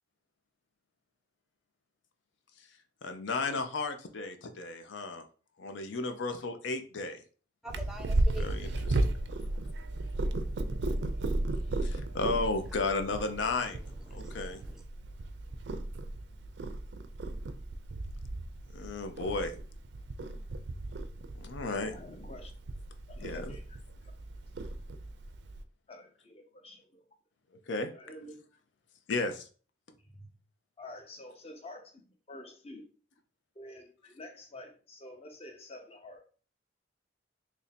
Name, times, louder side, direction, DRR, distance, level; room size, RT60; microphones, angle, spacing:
voice 1, 3.0-5.3 5.6-7.2 8.4-9.1 9.4-9.5 11.8-14.6 18.7-19.5 21.4-21.9 23.2-23.6 27.7-27.9 29.1-29.5, left 3 dB, 80° left, 0.5 m, -34 dB
voice 2, 7.6-10.5 10.8-11.1 11.8-12.2 14.1-14.8, right 1 dB, 5° right, 0.3 m, -49 dB
Purr, 7.7-25.6, right 2 dB, 70° right, 0.4 m, -35 dB
voice 3, 21.6-22.5 23.1-23.6 25.9-27.0 27.9-28.4 30.1-30.3 30.8-32.9 33.6-36.3, left 1 dB, 30° left, 0.7 m, -49 dB
3.0 x 2.6 x 4.1 m
head